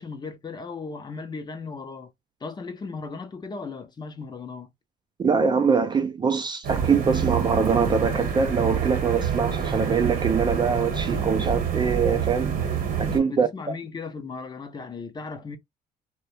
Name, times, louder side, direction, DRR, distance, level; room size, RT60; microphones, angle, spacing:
voice 1, 0.0-2.1 2.4-4.7 13.2-15.6, left 4 dB, 25° left, 0.5 m, -36 dB
voice 2, 5.2-12.6 13.0-13.5, right 5 dB, 25° right, 0.3 m, -23 dB
sound 1, 6.6-13.2, right 7 dB, 60° right, 1.0 m, -27 dB
2.3 x 2.1 x 2.6 m
cardioid pair, 110°, 17 cm